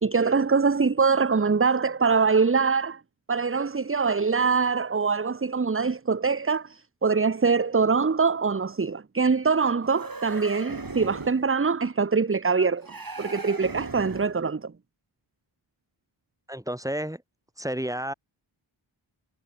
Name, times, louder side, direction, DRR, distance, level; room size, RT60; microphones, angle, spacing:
voice 1, 0.0-3.0 3.3-12.9 13.2-14.7, right 5 dB, 25° right, 0.8 m, -23 dB
sound 1, 9.8-11.5 12.8-14.4, right 3 dB, 45° right, 3.4 m, -38 dB
voice 2, 16.5-17.2 17.6-18.1, equal, 5° right, 3.9 m, -31 dB
wide cardioid pair, 45°, 48 cm